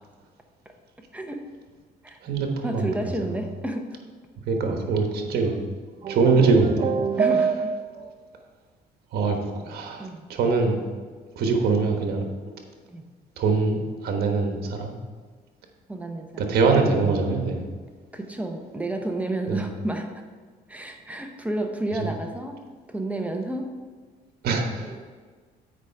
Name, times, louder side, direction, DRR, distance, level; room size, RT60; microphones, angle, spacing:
voice 1, 1.1-1.4 2.0-2.2 2.6-4.0 7.2-7.7 10.0-10.3 12.9-13.0 15.9-16.5 18.1-20.1 20.7-22.6 22.9-23.7 24.7-25.0, right 1 dB, 10° right, 4 dB, 0.9 m, -31 dB
voice 2, 2.2-2.9 4.5-5.6 6.1-6.9 9.1-10.8 11.3-12.3 13.4-14.9 16.4-17.6 19.5-19.6 21.9-22.1 24.4-25.0, right 4 dB, 65° right, 3 dB, 1.3 m, -23 dB
sound 1, 6.0-8.1, right 6 dB, 35° right, 0.7 m, -25 dB
8.2 x 5.0 x 4.6 m, 1.5 s
cardioid pair, 110°, 17 cm